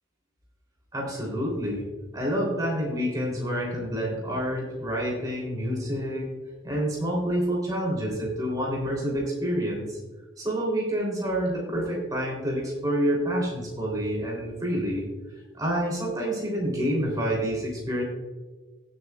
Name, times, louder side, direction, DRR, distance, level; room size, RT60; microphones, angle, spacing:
voice 1, 0.9-1.9 2.1-6.3 6.6-10.0 10.4-15.1 15.5-18.0, equal, 20° right, -2 dB, 3.1 m, -28 dB
18.0 x 7.7 x 2.3 m, 1.3 s
head